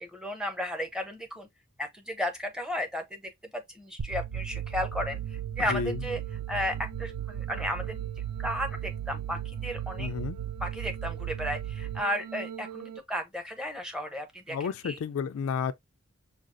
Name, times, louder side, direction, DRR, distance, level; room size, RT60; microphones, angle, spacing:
voice 1, 0.0-1.5 1.8-3.2 3.5-5.2 5.5-6.2 6.5-8.0 8.4-10.1 10.6-15.0, left 1 dB, 5° right, 0.6 m, -34 dB
sound 1, 4.0-13.0, right 10 dB, 75° right, 0.4 m, -36 dB
voice 2, 5.7-6.0 10.0-10.4 14.5-15.7, left 6 dB, 70° left, 0.3 m, -31 dB
4.9 x 2.3 x 2.5 m
head